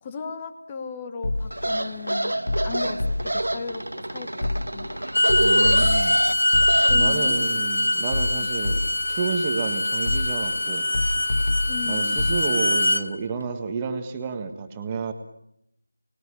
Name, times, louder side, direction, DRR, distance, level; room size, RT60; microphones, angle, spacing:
voice 1, 0.0-2.4 2.6-5.0 6.4-6.6 6.9-7.3 8.3-8.5 11.7-12.3, left 5 dB, 15° left, 8 dB, 1.5 m, -36 dB
sound 1, 1.2-1.8 2.5-3.5 4.4-4.9 5.3-7.4 8.1-9.2 10.1-10.6 10.9-12.4, left 1 dB, 45° left, 2.4 m, -27 dB
sound 2, 1.5-6.9, right 1 dB, 70° right, 1.5 m, -28 dB
Bowed string instrument, 5.0-13.0, left 1 dB, 75° left, 2.4 m, -23 dB
voice 2, 5.4-6.2 6.9-8.8 9.1-10.9 11.9-15.1, right 5 dB, 15° right, 6 dB, 1.7 m, -30 dB
29.5 x 21.0 x 8.7 m, 0.78 s
figure-of-eight pair, 165°, 0 cm